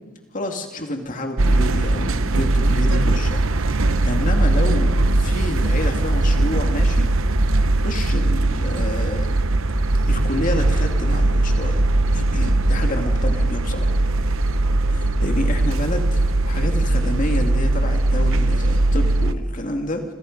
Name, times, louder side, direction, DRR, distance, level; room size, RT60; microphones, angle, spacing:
voice 1, 0.3-7.1 7.8-9.3 10.1-11.8 12.1-13.9 14.9-20.0, left 1 dB, 35° left, 3 dB, 2.3 m, -29 dB
sound 1, 1.4-19.3, right 2 dB, 70° right, 0.9 m, -19 dB
28.0 x 27.0 x 5.3 m, 1.3 s
head